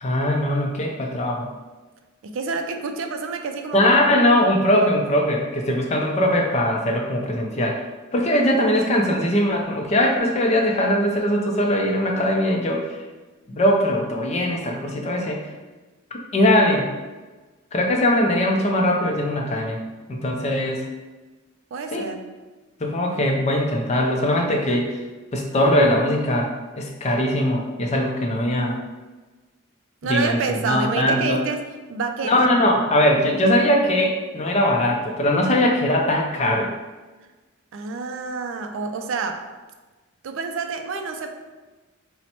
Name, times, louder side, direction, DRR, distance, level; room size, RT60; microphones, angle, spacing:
voice 1, 0.0-1.5 3.7-7.8 8.1-13.0 13.5-15.5 16.3-16.9 17.7-19.8 20.1-20.9 21.9-22.1 22.8-24.9 25.3-28.8 30.0-31.4 32.2-36.7, left 1 dB, 30° left, 1 dB, 0.4 m, -21 dB
voice 2, 2.2-3.8 21.7-22.2 30.0-31.6 31.9-32.5 35.5-35.6 37.7-39.5 40.2-41.3, right 4 dB, 70° right, 5 dB, 0.3 m, -28 dB
2.9 x 2.1 x 4.1 m, 1.2 s
head